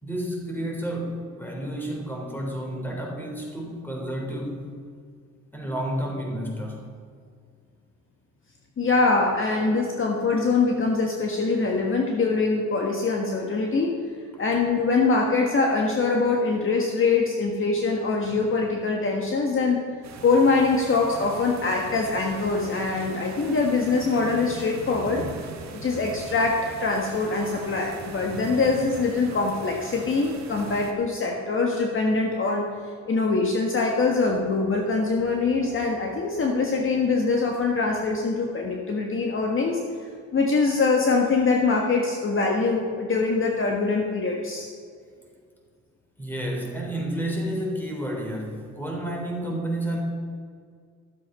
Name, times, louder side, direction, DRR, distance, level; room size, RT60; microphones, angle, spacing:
voice 1, 0.0-4.7 5.5-6.8 25.2-25.3 46.2-50.0, right 1 dB, 5° left, -1 dB, 3.5 m, -30 dB
voice 2, 8.8-13.9 14.4-19.8 20.2-25.2 25.7-32.6 33.1-44.7, left 3 dB, 45° left, 1 dB, 1.5 m, -23 dB
sound 1, 20.0-30.9, right 4 dB, 60° right, 1.6 m, -40 dB
13.0 x 7.5 x 5.5 m, 2.1 s
cardioid pair, 90°, 30 cm